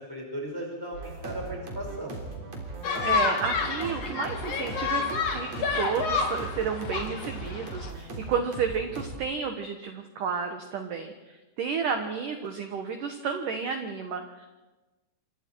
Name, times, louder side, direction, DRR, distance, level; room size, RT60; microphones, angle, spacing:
voice 1, 0.1-2.1, right 1 dB, 5° left, 0 dB, 4.8 m, -36 dB
sound 1, 0.9-9.2, right 3 dB, 35° right, 4.1 m, -39 dB
sound 2, 2.8-7.9, left 5 dB, 45° left, 2.5 m, -29 dB
voice 2, 3.0-14.5, right 6 dB, 65° right, 6 dB, 2.2 m, -32 dB
28.0 x 25.0 x 4.7 m, 1.1 s
omnidirectional pair, 5.3 m